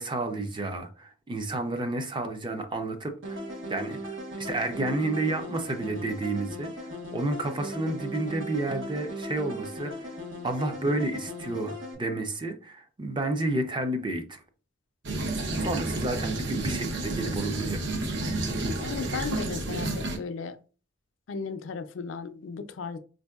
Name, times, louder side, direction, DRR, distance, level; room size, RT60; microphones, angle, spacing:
voice 1, 0.0-3.4 3.7-10.0 10.4-14.4 15.4-17.8, right 2 dB, 25° right, 0.5 m, -31 dB
sound 1, 3.2-11.9, equal, 85° right, 1.2 m, -38 dB
sound 2, 15.0-20.2, right 2 dB, 65° right, 0.7 m, -30 dB
voice 2, 18.8-20.6 21.3-23.0, left 5 dB, 70° left, 0.4 m, -35 dB
4.4 x 2.6 x 2.3 m
head